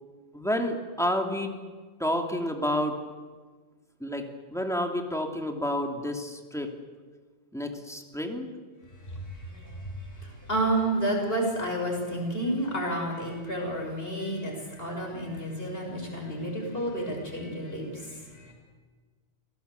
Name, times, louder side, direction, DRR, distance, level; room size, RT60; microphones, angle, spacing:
voice 1, 0.3-1.5 2.0-3.0 4.0-4.2 4.5-6.7 7.5-8.5, left 1 dB, 5° left, 2 dB, 2.8 m, -29 dB
voice 2, 10.5-18.1 18.3-18.5, right 1 dB, 60° left, 0 dB, 6.9 m, -30 dB
27.0 x 18.5 x 8.3 m, 1.4 s
omnidirectional pair, 1.1 m